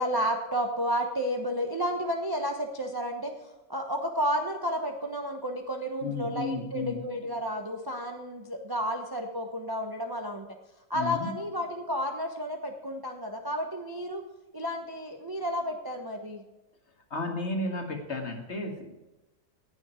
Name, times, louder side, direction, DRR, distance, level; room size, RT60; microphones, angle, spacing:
voice 1, 0.0-10.5 10.9-14.2 14.5-16.4, equal, 20° right, 3 dB, 0.7 m, -31 dB
voice 2, 6.0-7.0 10.9-11.3 17.1-18.9, left 2 dB, 40° left, 4 dB, 1.9 m, -33 dB
19.0 x 7.2 x 4.4 m, 1.1 s
omnidirectional pair, 1.9 m